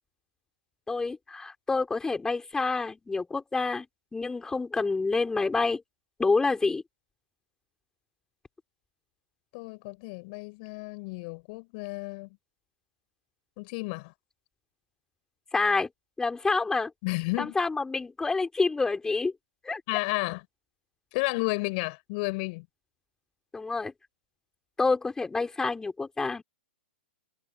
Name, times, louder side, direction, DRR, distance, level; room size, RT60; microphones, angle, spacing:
voice 1, 0.9-3.9 4.1-5.8 6.2-6.8 15.5-15.9 16.2-16.9 17.4-19.3 19.6-19.8 23.5-23.9 24.8-26.4, left 3 dB, 10° left, 6.4 m, -27 dB
voice 2, 9.5-12.3 13.6-14.1 17.0-17.6 19.9-20.4 21.1-22.7, left 29 dB, 45° left, 6.7 m, -32 dB
hypercardioid pair, 115°, 6 cm